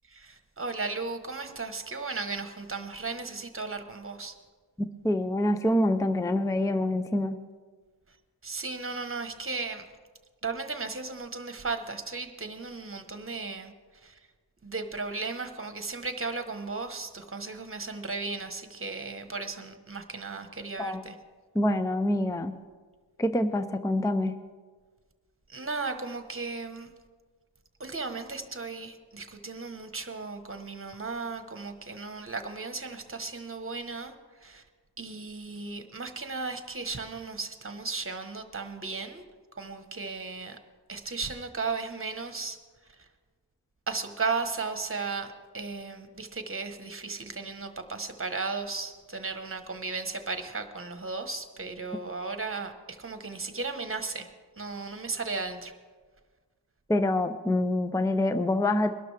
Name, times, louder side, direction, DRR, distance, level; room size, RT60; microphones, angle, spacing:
voice 1, 0.1-4.3 8.4-9.8 10.4-13.7 14.0-14.1 14.6-21.1 25.5-26.9 27.8-34.1 34.4-34.6 35.0-39.2 39.6-40.6 40.9-42.6 43.9-54.3 54.6-55.7, right 4 dB, 30° right, 7 dB, 1.1 m, -35 dB
voice 2, 4.8-7.4 20.8-21.0 21.5-22.5 23.2-24.3 56.9-58.9, left 1 dB, 10° left, 10 dB, 0.5 m, -26 dB
21.5 x 12.0 x 3.3 m, 1.5 s
wide cardioid pair, 80°, 43 cm